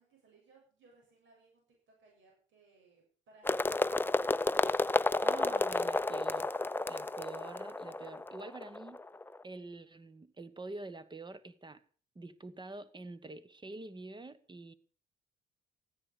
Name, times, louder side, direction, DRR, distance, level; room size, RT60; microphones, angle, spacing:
voice 1, 0.0-4.2, right 3 dB, 75° right, 8.0 m, -64 dB
sound 1, 3.4-9.4, left 2 dB, 10° left, 0.6 m, -31 dB
voice 2, 5.2-6.5 6.9-9.0 9.4-11.8 12.1-14.7, right 2 dB, 25° right, 1.3 m, -46 dB
15.0 x 10.0 x 6.6 m
cardioid pair, 90°, 20 cm